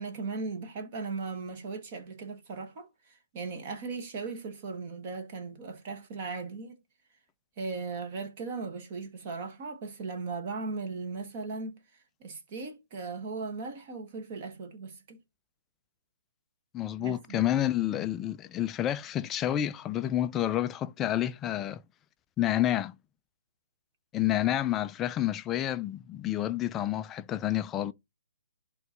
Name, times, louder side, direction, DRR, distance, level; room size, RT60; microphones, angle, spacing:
voice 1, 0.0-2.9 3.3-6.7 7.6-11.8 12.2-15.2 17.0-17.4, right 4 dB, 30° right, 1.5 m, -37 dB
voice 2, 16.7-21.8 22.4-22.9 24.1-27.9, left 12 dB, 10° left, 0.3 m, -29 dB
11.0 x 3.8 x 2.9 m
hypercardioid pair, 170°, 0 cm